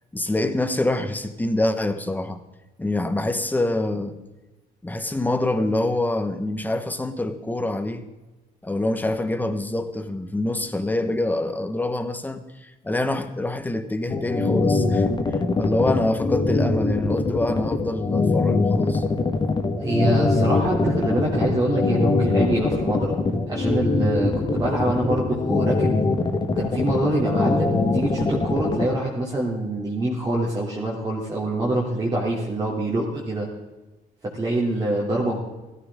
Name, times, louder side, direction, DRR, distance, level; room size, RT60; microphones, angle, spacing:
voice 1, 0.1-2.4 2.8-4.2 4.8-8.1 8.6-15.1 15.6-19.0, left 2 dB, 10° left, 1.2 m, -25 dB
sound 1, 14.1-28.8, left 3 dB, 25° left, 1.6 m, -22 dB
voice 2, 19.8-23.1 23.5-25.9 26.5-33.5 34.3-35.4, right 1 dB, 20° right, 2.9 m, -25 dB
16.5 x 14.0 x 3.7 m
cardioid pair, 110°, 17 cm